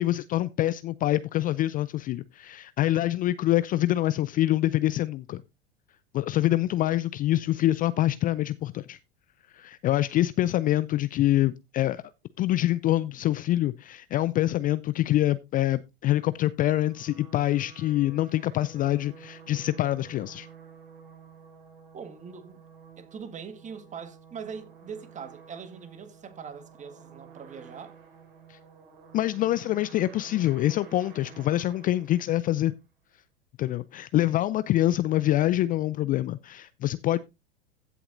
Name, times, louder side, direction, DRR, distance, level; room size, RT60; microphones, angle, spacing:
voice 1, 0.0-5.4 6.1-9.0 9.5-12.0 12.4-20.5 28.5-28.6 29.1-32.7 33.6-37.2, left 14 dB, 30° left, 0.4 m, -25 dB
sound 1, 16.5-32.8, right 6 dB, 65° right, 4.1 m, -51 dB
voice 2, 21.9-22.6 23.0-28.0, right 6 dB, 25° right, 1.7 m, -42 dB
15.5 x 7.0 x 2.5 m
hypercardioid pair, 90°, 30 cm